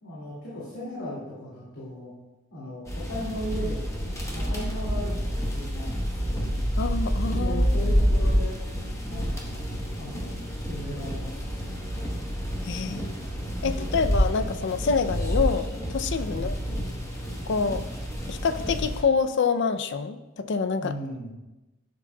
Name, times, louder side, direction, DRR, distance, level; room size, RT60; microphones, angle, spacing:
voice 1, 0.0-2.1 2.5-4.1 4.3-6.6 7.3-8.6 9.0-11.7 12.8-13.1 13.6-14.0 16.2-16.5 20.8-21.3, equal, 80° left, -8 dB, 2.4 m, -37 dB
sound 1, 2.9-19.0, equal, 15° left, 1.1 m, -28 dB
voice 2, 6.8-7.9 12.6-13.1 13.6-16.5 17.5-17.8 18.3-20.9, left 5 dB, 60° left, 10 dB, 0.5 m, -27 dB
11.0 x 7.4 x 2.3 m, 1.0 s
head